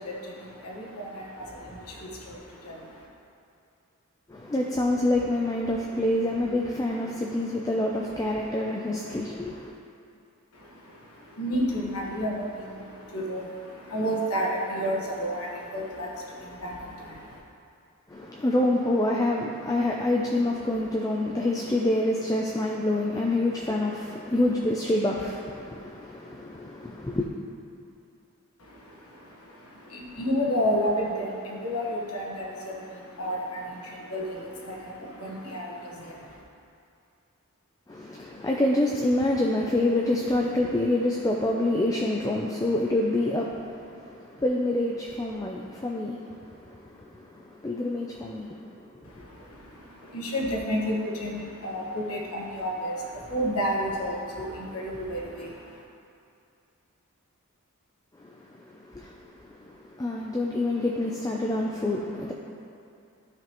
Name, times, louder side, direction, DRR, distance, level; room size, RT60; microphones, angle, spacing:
voice 1, 0.0-3.1 10.5-17.4 28.6-36.4 49.0-55.8, equal, 80° left, -2 dB, 1.3 m, -32 dB
voice 2, 4.3-9.7 18.1-27.3 37.9-48.6 49.2-49.3 58.2-62.3, left 1 dB, 15° left, -1 dB, 0.4 m, -27 dB
12.0 x 5.1 x 3.0 m, 2.5 s
head